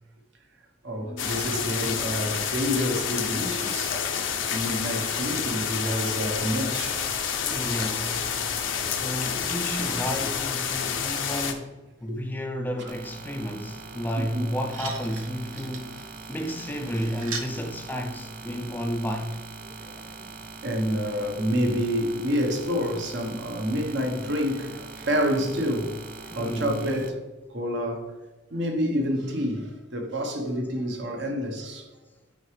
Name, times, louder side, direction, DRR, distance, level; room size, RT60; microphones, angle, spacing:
voice 1, 0.8-4.0 4.5-7.1 9.0-9.5 12.1-12.2 12.8-12.9 14.3-14.5 19.8-20.3 20.6-26.0 26.3-27.2 27.5-28.1 28.5-31.9, equal, 65° right, 1.1 m, -28 dB
sound 1, 1.2-11.5, left 7 dB, 75° left, 0.7 m, -29 dB
voice 2, 7.4-19.4 26.3-26.8, equal, 10° left, 0.4 m, -32 dB
sound 2, 12.9-27.1, right 4 dB, 45° right, 0.6 m, -42 dB
sound 3, 14.7-17.5 18.5-18.6, right 5 dB, 90° right, 0.9 m, -40 dB
8.8 x 4.8 x 3.3 m
head